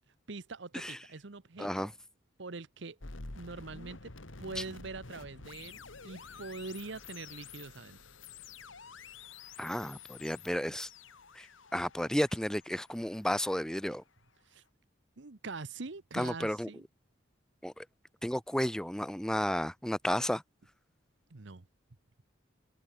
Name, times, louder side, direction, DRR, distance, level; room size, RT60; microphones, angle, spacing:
voice 1, 0.3-1.9 2.4-3.0 3.3-4.1 4.4-8.0 14.5-14.6 15.2-16.9 21.3-21.6, right 3 dB, 70° right, 1.0 m, -43 dB
voice 2, 1.6-1.9 9.6-10.9 11.4-11.5 11.7-14.0 16.1-16.7 17.6-17.8 18.2-20.4, equal, 5° left, 0.7 m, -32 dB
sound 1, 3.0-14.0, left 4 dB, 90° left, 2.4 m, -50 dB
head